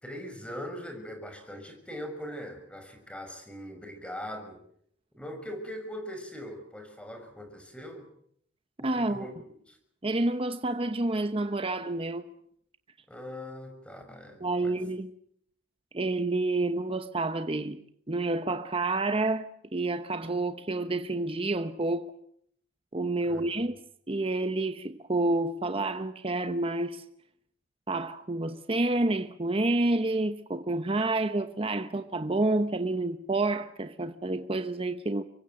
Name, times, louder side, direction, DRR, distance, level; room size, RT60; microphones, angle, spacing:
voice 1, 0.0-4.6 5.1-8.1 8.8-9.4 9.7-9.8 13.1-14.7 23.2-23.4, equal, 5° left, 6.1 m, -41 dB
voice 2, 8.8-9.3 10.0-12.2 14.4-15.1 15.9-17.8 18.1-22.1 22.9-23.8 24.1-27.0 27.9-35.2, right 2 dB, 30° right, 1.0 m, -29 dB
25.5 x 23.0 x 7.8 m
head